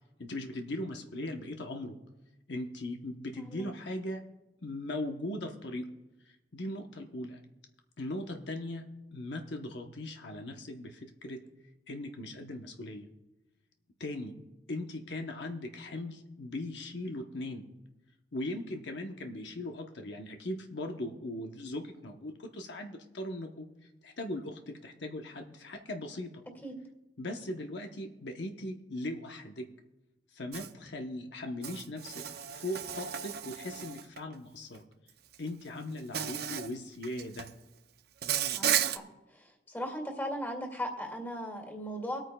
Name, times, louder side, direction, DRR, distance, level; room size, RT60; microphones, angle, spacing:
voice 1, 0.2-2.0 2.5-4.2 4.6-5.9 6.2-7.4 8.0-8.8 9.1-11.4 11.9-13.1 14.0-14.3 14.7-17.7 18.3-26.4 27.2-29.7 30.3-32.2 32.5-34.8 35.4-37.5, left 1 dB, 75° left, 4 dB, 0.9 m, -39 dB
voice 2, 3.4-3.7 26.6-26.7 38.5-39.0 39.3-42.2, equal, 10° left, 1 dB, 2.1 m, -38 dB
Insect, 30.5-30.7 31.6-34.2 35.3-35.5 36.1-36.7 37.0-37.5 38.2-39.0, right 9 dB, 60° right, 0.5 m, -33 dB
23.5 x 9.0 x 2.3 m, 1.0 s
head